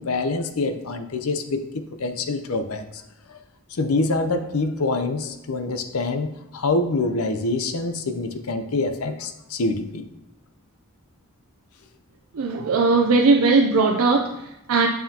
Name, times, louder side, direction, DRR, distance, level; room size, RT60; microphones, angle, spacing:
voice 1, 0.0-2.9 3.3-3.4 3.7-10.1, left 3 dB, 85° left, 8 dB, 0.6 m, -25 dB
voice 2, 12.3-14.9, right 3 dB, 85° right, 2 dB, 0.5 m, -19 dB
7.2 x 5.7 x 2.8 m, 0.95 s
head